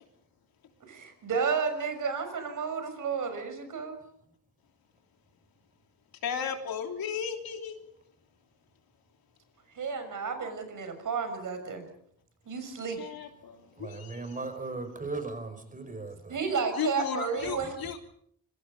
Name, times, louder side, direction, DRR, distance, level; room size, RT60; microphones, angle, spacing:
voice 1, 0.8-4.0 9.8-11.8 12.5-13.0 16.3-17.8, right 5 dB, 60° right, 7 dB, 6.2 m, -32 dB
voice 2, 6.2-7.9 13.0-14.4 16.8-18.0, left 7 dB, 80° left, 4 dB, 3.3 m, -35 dB
voice 3, 13.8-16.4, right 3 dB, 20° right, 9 dB, 5.2 m, -37 dB
26.0 x 23.5 x 5.4 m, 0.67 s
cardioid pair, 125°, 35 cm